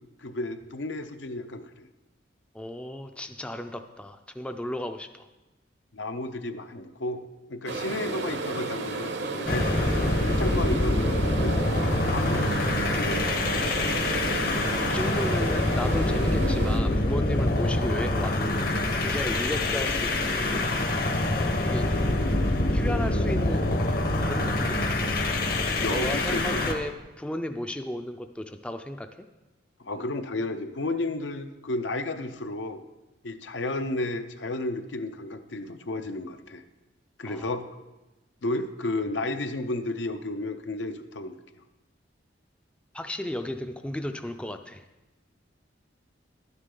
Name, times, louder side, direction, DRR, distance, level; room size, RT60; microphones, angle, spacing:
voice 1, 0.2-1.9 5.9-9.7 10.2-11.6 12.0-13.8 25.8-26.7 29.8-32.8 33.2-36.6 37.2-37.6 38.4-41.4, left 2 dB, 80° left, 8 dB, 0.7 m, -32 dB
voice 2, 2.5-5.3 7.7-7.8 14.9-18.7 19.0-20.6 21.7-21.9 22.7-23.7 24.2-25.2 25.9-29.3 37.2-37.5 42.9-44.8, left 1 dB, 5° left, 7 dB, 0.4 m, -34 dB
sound 1, 7.7-16.8, right 3 dB, 65° right, 0.8 m, -33 dB
sound 2, 9.4-26.8, left 2 dB, 55° left, 1.0 m, -25 dB
11.5 x 9.7 x 3.8 m, 1.1 s
head